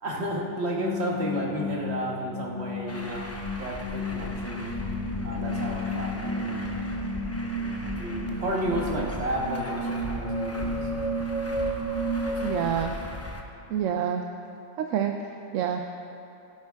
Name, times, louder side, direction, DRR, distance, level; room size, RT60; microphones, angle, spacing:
voice 1, 0.0-3.2 3.6-4.8 5.2-6.6 7.9-11.1 12.2-12.8, right 1 dB, 50° right, -2 dB, 1.7 m, -32 dB
sound 1, 0.7-12.6, equal, 60° left, 2.5 m, -32 dB
Truck, 2.9-13.4, left 1 dB, 15° left, 0.5 m, -39 dB
voice 2, 12.4-12.9 13.7-14.2 14.8-15.1 15.5-15.8, right 9 dB, 70° right, 4 dB, 0.9 m, -27 dB
16.5 x 9.1 x 3.5 m, 2.9 s
omnidirectional pair, 1.5 m